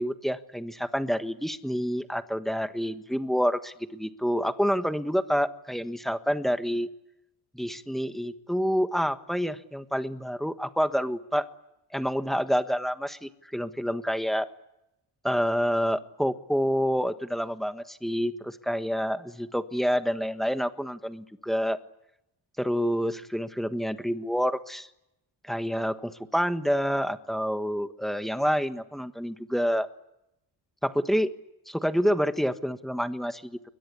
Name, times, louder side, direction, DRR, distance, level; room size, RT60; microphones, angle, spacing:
voice 1, 0.0-6.9 7.5-11.5 11.9-14.5 15.2-21.8 22.6-24.9 25.4-29.9 30.8-31.3 31.7-33.6, equal, ahead, 9 dB, 1.4 m, -28 dB
29.5 x 22.0 x 8.4 m, 0.84 s
cardioid pair, 135°, 40 cm